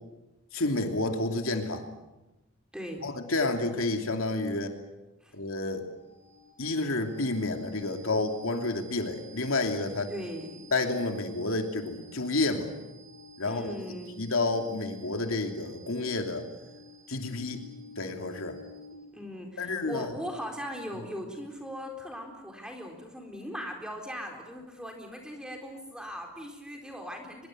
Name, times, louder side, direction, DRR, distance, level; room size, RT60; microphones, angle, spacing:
voice 1, 0.5-1.9 3.0-4.7 5.3-5.9 6.6-10.1 10.7-12.7 13.4-13.7 14.2-16.5 17.1-17.7 18.0-18.6 19.6-20.1, left 2 dB, 85° left, 4 dB, 2.8 m, -30 dB
voice 2, 2.7-3.0 5.2-5.3 10.1-10.6 13.4-14.1 18.9-27.5, equal, 5° right, 2 dB, 4.1 m, -39 dB
sound 1, 5.4-19.3, left 2 dB, 55° right, 4.0 m, -50 dB
24.5 x 22.0 x 7.9 m, 1.0 s
head